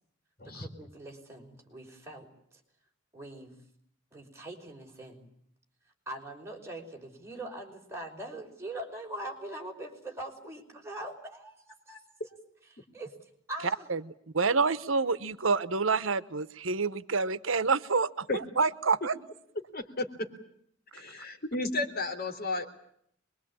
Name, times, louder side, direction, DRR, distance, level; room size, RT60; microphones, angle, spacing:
voice 1, 0.4-2.3 3.1-3.5 4.1-5.2 6.1-12.1 12.9-13.1 13.5-13.9, right 1 dB, 15° right, 0 dB, 5.3 m, -42 dB
voice 2, 14.3-18.3 18.6-19.2, right 4 dB, 85° right, 14 dB, 1.0 m, -27 dB
voice 3, 19.7-20.3 20.9-22.7, left 2 dB, 50° left, 6 dB, 3.7 m, -33 dB
25.0 x 22.5 x 8.7 m, 0.70 s
head